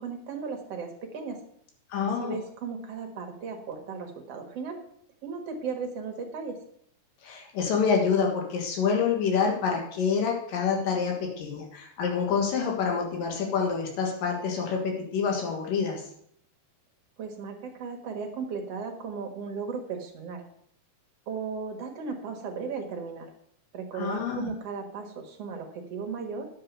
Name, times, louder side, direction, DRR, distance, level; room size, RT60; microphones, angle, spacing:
voice 1, 0.0-1.4 2.0-4.8 5.2-6.6 17.2-20.4 21.3-23.3 23.7-26.5, right 5 dB, 55° right, 3 dB, 2.2 m, -36 dB
voice 2, 1.9-2.4 7.2-16.0 23.9-24.5, left 6 dB, 90° left, 1 dB, 3.3 m, -27 dB
10.0 x 6.7 x 6.8 m, 0.68 s
omnidirectional pair, 3.8 m